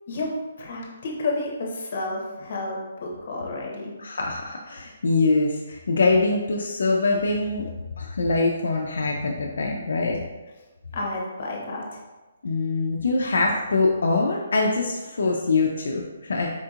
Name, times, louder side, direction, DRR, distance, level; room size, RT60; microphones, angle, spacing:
voice 1, 0.6-3.9 10.9-12.0, left 2 dB, 45° left, -1 dB, 0.8 m, -31 dB
voice 2, 4.0-7.7 8.0-10.2 12.4-16.5, left 3 dB, 75° left, 0 dB, 0.4 m, -23 dB
4.3 x 2.8 x 2.4 m, 1.2 s
hypercardioid pair, 165°, 0 cm